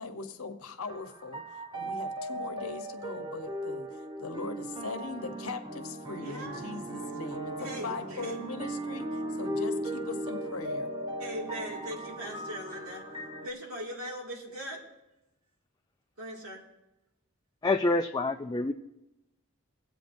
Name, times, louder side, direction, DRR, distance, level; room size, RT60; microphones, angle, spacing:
voice 1, 0.0-10.9, left 3 dB, 80° left, 6 dB, 1.0 m, -40 dB
sound 1, 0.9-13.5, right 1 dB, 20° right, 0.9 m, -37 dB
voice 2, 6.1-6.6 7.0-7.1 7.6-8.4 11.2-13.1 13.4-14.8 16.2-16.6, equal, 80° right, -1 dB, 2.4 m, -40 dB
voice 3, 17.6-18.7, left 2 dB, 20° left, 4 dB, 0.3 m, -27 dB
22.5 x 8.2 x 2.7 m, 0.95 s
head